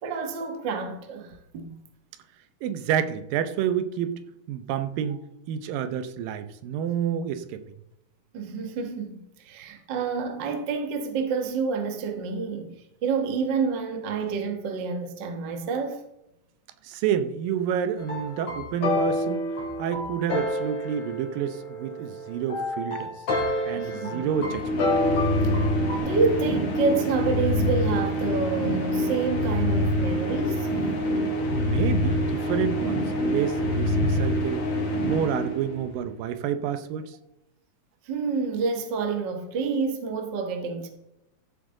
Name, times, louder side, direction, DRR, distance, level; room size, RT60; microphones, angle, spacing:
voice 1, 0.0-1.7 8.3-12.8 13.0-16.0 23.7-24.2 25.4-25.5 26.0-30.7 38.0-40.9, right 5 dB, 55° right, 1.3 m, -28 dB
voice 2, 2.6-4.2 4.5-5.2 5.5-7.6 16.8-19.5 19.8-23.1 23.7-24.8 31.5-34.6 35.0-37.2, right 9 dB, 80° right, 2.4 m, -29 dB
sound 1, 18.0-26.0, left 1 dB, 45° left, 3.1 m, -29 dB
sound 2, 24.2-36.1, left 1 dB, 65° left, 0.8 m, -26 dB
14.5 x 7.5 x 3.8 m
omnidirectional pair, 4.0 m